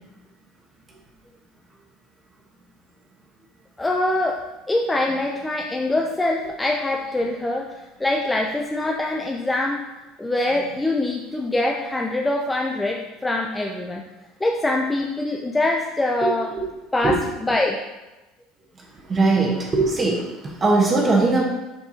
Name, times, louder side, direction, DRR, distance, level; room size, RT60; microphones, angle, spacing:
voice 1, 3.8-9.8 10.2-14.0 14.4-16.5 16.9-17.8, left 2 dB, 10° left, 1 dB, 0.5 m, -24 dB
voice 2, 19.1-21.4, right 3 dB, 25° right, -2 dB, 1.2 m, -20 dB
6.8 x 6.7 x 2.8 m, 1.1 s
cardioid pair, 130°, 0 cm